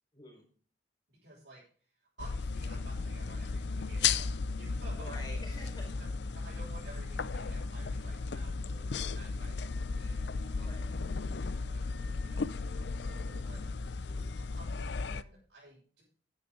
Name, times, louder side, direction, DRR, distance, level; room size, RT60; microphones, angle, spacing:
voice 1, 0.1-0.4 5.0-6.0 10.5-11.0 14.0-14.4, left 1 dB, 20° left, 0 dB, 4.9 m, -48 dB
voice 2, 1.1-5.1 6.0-6.1 6.3-14.1 14.5-16.0, right 2 dB, 65° right, -7 dB, 6.3 m, -54 dB
sound 1, 2.2-15.2, left 4 dB, 70° left, 0.5 m, -35 dB
sound 2, 2.5-13.8, equal, 45° left, 3.4 m, -54 dB
12.5 x 9.7 x 3.8 m, 0.43 s
head